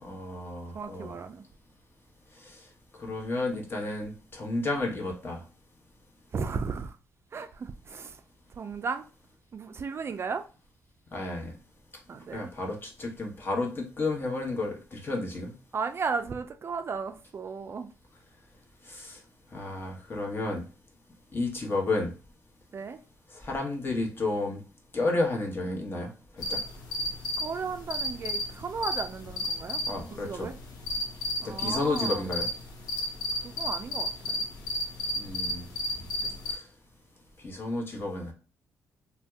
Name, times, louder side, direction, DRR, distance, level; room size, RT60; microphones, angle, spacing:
voice 1, 0.0-1.2 2.4-2.5 3.0-5.4 11.1-11.5 12.3-15.5 18.9-19.2 19.5-20.7 21.3-22.1 23.4-24.6 24.9-26.1 26.4-26.6 29.9-30.5 31.4-32.5 35.2-35.7 36.5-36.6 37.4-38.3, left 2 dB, 35° left, 1.1 m, -31 dB
voice 2, 0.7-1.4 6.3-7.0 7.3-8.2 8.6-9.0 9.5-10.4 12.1-12.5 15.7-17.9 22.7-23.0 27.4-29.8 30.1-30.6 31.4-32.2 33.4-34.4 36.2-36.3, right 5 dB, 40° right, 0.3 m, -35 dB
sound 1, 26.4-36.6, left 1 dB, 75° left, 0.7 m, -33 dB
2.6 x 2.2 x 3.4 m
cardioid pair, 70°, 6 cm